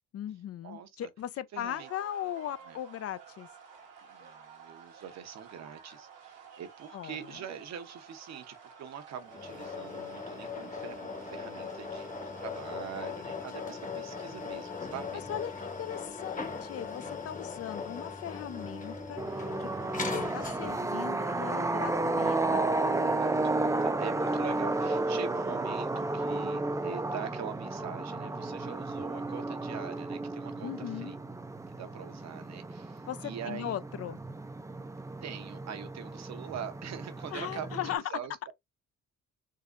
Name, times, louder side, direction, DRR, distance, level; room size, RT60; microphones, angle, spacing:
voice 1, 0.1-3.5 6.9-7.4 15.3-19.7 20.0-22.8 30.6-31.1 33.1-34.2 37.3-38.0, left 11 dB, 50° left, 0.5 m, -39 dB
voice 2, 0.6-1.1 1.5-1.9 2.7-2.8 4.1-15.2 23.2-31.2 31.7-33.8 35.2-38.5, right 8 dB, 60° right, 0.9 m, -44 dB
sound 1, 1.7-12.7, right 6 dB, 90° right, 1.1 m, -52 dB
sound 2, 9.3-21.0, left 4 dB, 25° left, 1.0 m, -39 dB
sound 3, 19.2-37.9, right 2 dB, 10° right, 0.4 m, -33 dB
3.8 x 2.7 x 2.5 m
cardioid pair, 90°, 30 cm